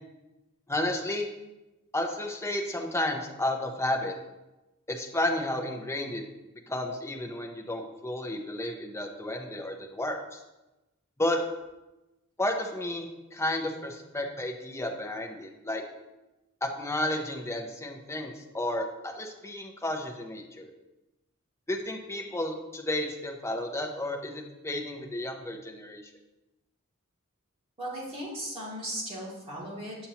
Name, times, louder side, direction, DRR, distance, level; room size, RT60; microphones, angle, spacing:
voice 1, 0.7-1.3 1.9-4.1 4.9-6.2 6.7-10.4 11.2-11.4 12.4-15.8 16.6-20.7 21.7-26.0, left 1 dB, 15° left, 2 dB, 0.7 m, -32 dB
voice 2, 27.8-30.0, right 1 dB, 30° right, -6 dB, 2.4 m, -37 dB
7.3 x 7.0 x 2.9 m, 1.0 s
head